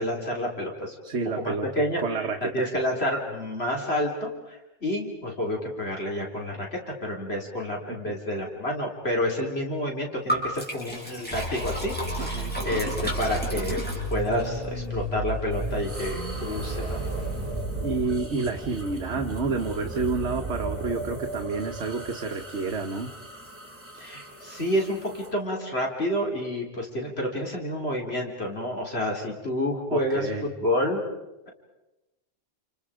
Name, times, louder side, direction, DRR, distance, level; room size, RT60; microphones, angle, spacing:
voice 1, 0.0-1.0 1.3-2.0 2.5-13.8 14.1-17.0 24.0-31.0, left 1 dB, 60° left, 0 dB, 3.9 m, -29 dB
voice 2, 1.0-1.7 2.0-2.7 7.9-8.2 12.2-12.6 17.8-23.1 29.9-30.5, right 4 dB, 70° right, 3 dB, 1.5 m, -29 dB
Liquid, 10.3-14.5, equal, 10° left, 5.9 m, -33 dB
sound 1, 11.3-18.1, right 1 dB, 30° left, 5.5 m, -33 dB
sound 2, 15.5-25.3, right 3 dB, 10° right, 3.3 m, -37 dB
29.0 x 29.0 x 5.0 m, 1.0 s
omnidirectional pair, 1.2 m